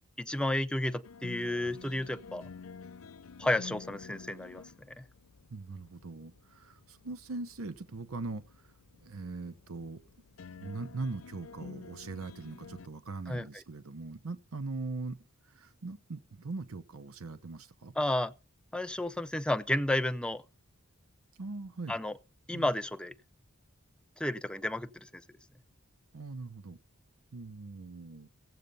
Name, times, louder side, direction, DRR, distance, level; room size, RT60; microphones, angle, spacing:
voice 1, 0.2-2.5 3.4-4.6 5.0-5.1 13.3-13.6 18.0-18.3 18.7-20.4 21.9-22.2 22.5-23.1 24.2-25.2, left 1 dB, 5° left, 0.5 m, -32 dB
sound 1, 1.0-12.9, left 5 dB, 70° left, 0.5 m, -50 dB
voice 2, 5.5-8.7 9.0-10.0 10.5-15.2 15.4-17.9 21.4-22.0 22.5-22.7 26.1-26.8 27.3-28.3, right 3 dB, 90° right, 0.8 m, -41 dB
15.0 x 8.0 x 5.4 m
head